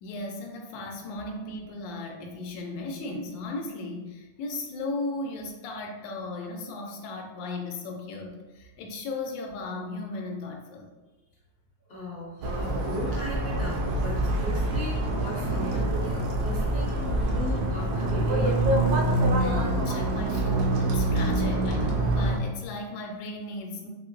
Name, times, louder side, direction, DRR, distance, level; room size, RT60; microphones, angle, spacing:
voice 1, 0.0-10.9 19.4-23.9, left 2 dB, 85° left, 2 dB, 1.3 m, -36 dB
voice 2, 11.9-18.6, left 1 dB, 60° left, -5 dB, 0.9 m, -37 dB
sound 1, 12.4-22.4, right 1 dB, 70° right, 0.9 m, -25 dB
4.1 x 2.8 x 2.5 m, 1.1 s
omnidirectional pair, 2.0 m